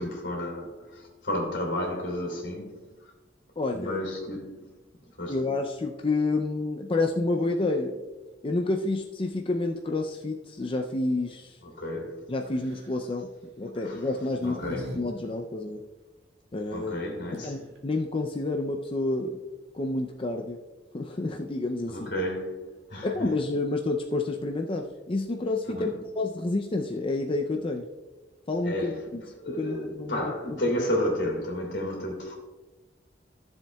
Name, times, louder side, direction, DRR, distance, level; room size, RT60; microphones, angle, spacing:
voice 1, 0.0-2.9 3.7-4.8 5.2-5.4 11.6-12.3 13.8-14.1 14.4-15.0 16.7-17.6 21.9-23.3 25.7-26.0 28.6-32.4, left 1 dB, 80° left, 2.8 m, -32 dB
voice 2, 3.6-4.0 5.3-8.0 8.4-11.6 12.3-13.3 13.6-15.8 16.5-17.0 17.3-19.4 19.7-20.6 20.9-22.1 23.0-27.8 28.5-29.2 29.5-30.8, left 2 dB, 30° left, 0.5 m, -29 dB
sound 1, 12.5-13.0 13.9-15.0 15.3-15.4 17.0-17.1 17.3-17.8, equal, 70° right, 2.0 m, -41 dB
14.5 x 7.2 x 2.3 m
head